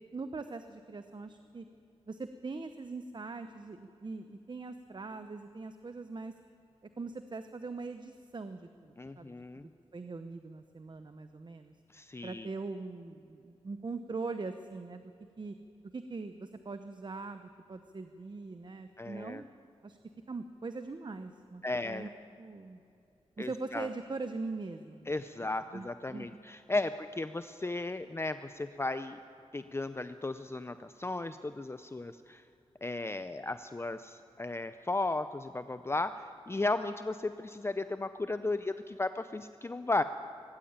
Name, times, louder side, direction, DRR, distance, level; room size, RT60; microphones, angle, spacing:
voice 1, 0.1-1.6 2.1-6.3 7.0-9.4 9.9-11.7 12.2-15.1 15.4-15.5 15.9-19.4 19.8-20.0 20.3-22.1 22.4-22.8 23.4-25.2 25.7-26.4, right 3 dB, 45° right, 9 dB, 0.9 m, -41 dB
voice 2, 9.0-9.7 11.9-12.5 19.0-19.4 21.6-22.1 23.4-23.9 25.1-29.2 29.5-32.4 32.8-40.0, left 2 dB, 25° left, 10 dB, 0.6 m, -35 dB
19.0 x 15.5 x 8.8 m, 2.6 s
cardioid pair, 65°, 11 cm